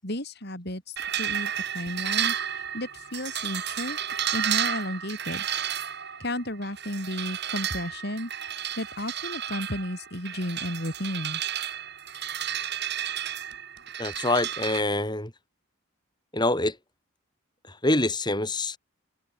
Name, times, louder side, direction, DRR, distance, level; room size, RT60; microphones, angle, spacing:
voice 1, 0.0-4.0 4.3-5.5 6.2-11.4, left 1 dB, 50° left, 7.1 m, -33 dB
sound 1, 1.0-14.8, right 9 dB, 50° right, 6.3 m, -32 dB
voice 2, 14.0-15.3 16.3-16.8 17.8-18.8, left 2 dB, 20° left, 4.4 m, -25 dB
head